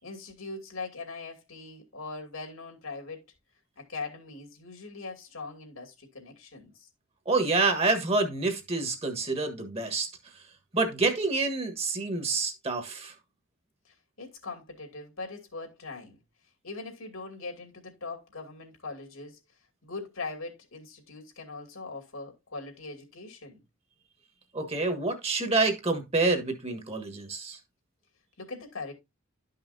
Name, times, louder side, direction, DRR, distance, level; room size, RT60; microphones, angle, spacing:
voice 1, 0.0-3.2 3.8-6.9 13.8-16.2 16.6-19.4 19.8-23.6 28.4-28.9, left 3 dB, 85° left, 2.6 m, -41 dB
voice 2, 7.3-10.1 10.7-13.1 24.5-27.6, right 3 dB, 30° right, 1.4 m, -27 dB
12.0 x 5.7 x 2.7 m
head